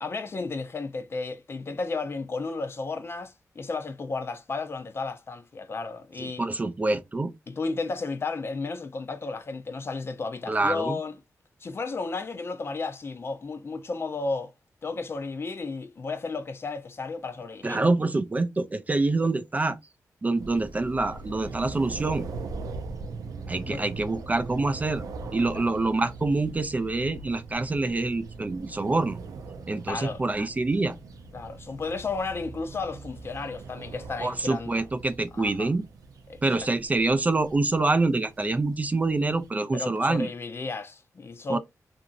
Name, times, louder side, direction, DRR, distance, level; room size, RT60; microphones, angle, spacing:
voice 1, 0.0-6.5 7.5-11.1 11.6-14.5 14.8-17.8 23.5-23.9 25.5-25.6 29.9-30.2 31.3-34.8 35.3-35.7 36.3-36.4 39.7-41.6, left 3 dB, 45° left, 0.5 m, -33 dB
voice 2, 6.2-7.3 10.5-11.0 17.6-19.8 20.2-22.3 23.5-25.0 25.3-29.2 29.7-31.0 34.2-35.8 36.4-40.3 41.5-41.6, right 3 dB, 25° right, 0.4 m, -26 dB
sound 1, 20.3-39.5, right 4 dB, 85° right, 0.5 m, -41 dB
2.9 x 2.6 x 2.4 m
cardioid pair, 80°, 6 cm